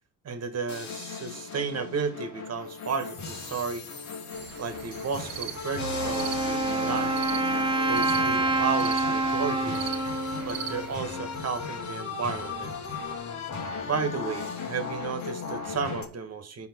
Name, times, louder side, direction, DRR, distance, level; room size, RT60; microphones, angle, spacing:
voice 1, 0.2-3.9 4.6-7.2 7.9-9.9 10.4-12.8 13.9-16.7, right 5 dB, 50° right, 1.3 m, -33 dB
sound 1, 0.7-16.0, left 5 dB, 55° left, 1.5 m, -36 dB
sound 2, 4.3-11.0, right 10 dB, 75° right, 0.9 m, -41 dB
Wind instrument woodwind instrument, 5.8-11.5, right 3 dB, 15° right, 0.6 m, -28 dB
5.1 x 4.9 x 5.4 m
cardioid pair, 80°, 34 cm